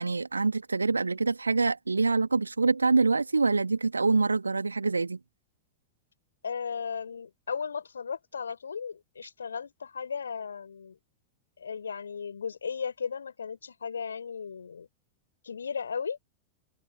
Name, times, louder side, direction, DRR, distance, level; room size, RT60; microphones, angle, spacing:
voice 1, 0.0-5.2, right 3 dB, 80° right, 2.0 m, -25 dB
voice 2, 6.4-11.0 11.6-14.9 15.4-16.2, left 6 dB, 70° left, 6.4 m, -36 dB
open air
figure-of-eight pair, 90°, 0 cm